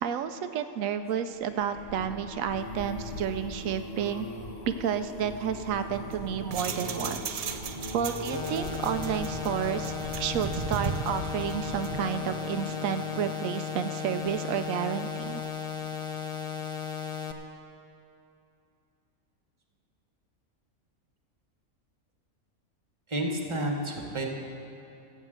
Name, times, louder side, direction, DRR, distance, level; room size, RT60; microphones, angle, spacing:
voice 1, 0.0-4.3 4.8-7.4 7.9-9.9 10.2-15.4, right 8 dB, 85° right, 9 dB, 1.0 m, -31 dB
sound 1, 1.3-14.7 15.2-15.6 15.8-15.9, left 1 dB, 55° left, 1.5 m, -41 dB
sound 2, 5.9-12.1, right 6 dB, 65° right, 0.3 m, -37 dB
sound 3, 8.3-17.3, left 7 dB, 35° left, 0.5 m, -35 dB
voice 2, 23.1-24.3, right 1 dB, 25° right, 2 dB, 1.3 m, -30 dB
13.5 x 7.5 x 7.8 m, 2.7 s
omnidirectional pair, 1.4 m